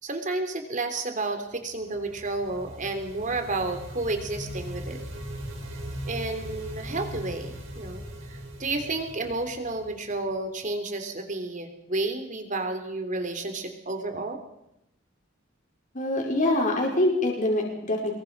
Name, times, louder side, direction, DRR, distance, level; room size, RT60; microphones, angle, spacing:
voice 1, 0.0-5.0 5.7-5.8 6.1-14.4, right 2 dB, 40° right, 6 dB, 3.3 m, -31 dB
sound 1, 1.6-10.4, equal, 80° right, 5.3 m, -39 dB
voice 2, 15.9-18.1, left 1 dB, 40° left, 0 dB, 5.2 m, -24 dB
24.5 x 22.0 x 5.4 m, 0.84 s
head